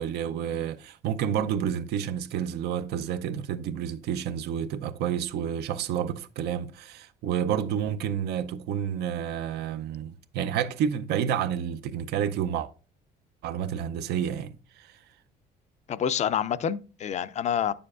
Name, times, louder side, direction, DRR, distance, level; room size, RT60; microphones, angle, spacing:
voice 1, 0.0-12.7 13.4-15.0, right 9 dB, 75° right, 0.6 m, -30 dB
voice 2, 15.9-17.7, left 8 dB, 45° left, 0.4 m, -27 dB
8.5 x 6.8 x 2.4 m
cardioid pair, 110°, 17 cm